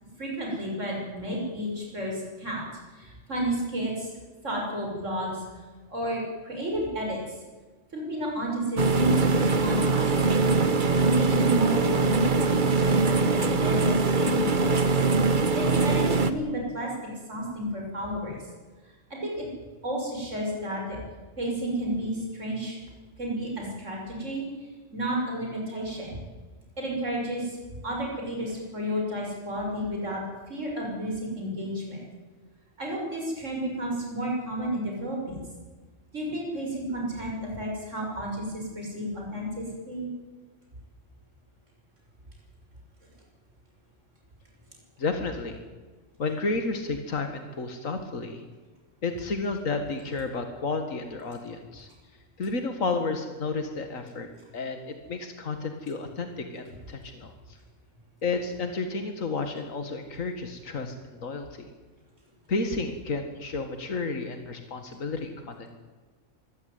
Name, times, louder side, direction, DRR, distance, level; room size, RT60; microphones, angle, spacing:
voice 1, 0.2-2.7 2.9-4.1 4.4-5.6 5.9-7.4 7.9-14.8 15.2-16.9 17.3-18.5 18.8-19.5 19.8-21.0 21.4-22.8 23.2-24.5 24.9-26.2 26.8-27.6 27.8-32.0 32.8-35.4 36.1-40.1, equal, 65° right, -1 dB, 6.4 m, -32 dB
sound 1, 8.8-16.3, right 4 dB, 40° right, 1.3 m, -22 dB
voice 2, 45.0-45.6 46.2-48.4 49.0-51.9 52.4-54.3 54.5-57.3 58.2-61.7 62.5-65.7, left 3 dB, 80° left, 6 dB, 2.2 m, -31 dB
24.5 x 15.5 x 9.6 m, 1.3 s
omnidirectional pair, 1.4 m